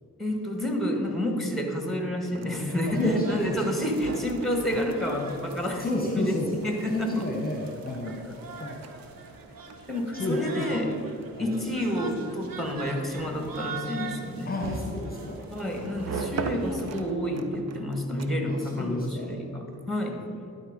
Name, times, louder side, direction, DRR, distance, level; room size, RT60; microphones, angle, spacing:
voice 1, 0.2-5.9 6.1-6.4 6.6-7.3 8.6-8.7 9.9-10.9 11.4-14.5 15.5-20.2, left 1 dB, ahead, 3 dB, 1.8 m, -29 dB
sound 1, 2.1-18.7, right 5 dB, 45° right, 0.7 m, -42 dB
sound 2, 2.7-17.0, right 3 dB, 60° right, 1.0 m, -42 dB
voice 2, 2.9-3.7 5.8-6.6 6.9-8.2 8.6-8.9 10.1-11.7 14.4-15.4 15.8-15.9 18.4-19.4 20.2-20.3, left 1 dB, 25° left, 0 dB, 1.2 m, -31 dB
11.5 x 4.3 x 5.3 m, 2.8 s
supercardioid pair, 45°, 38 cm